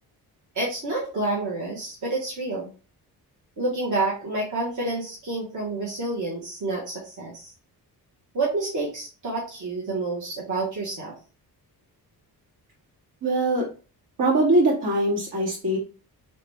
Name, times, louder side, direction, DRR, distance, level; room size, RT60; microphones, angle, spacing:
voice 1, 0.5-2.7 3.6-7.5 8.3-11.1, right 2 dB, 50° right, -5 dB, 1.3 m, -29 dB
voice 2, 13.2-13.6 14.2-15.8, right 1 dB, 75° right, -4 dB, 2.3 m, -22 dB
3.9 x 3.3 x 3.3 m, 0.36 s
wide cardioid pair, 170°, 38 cm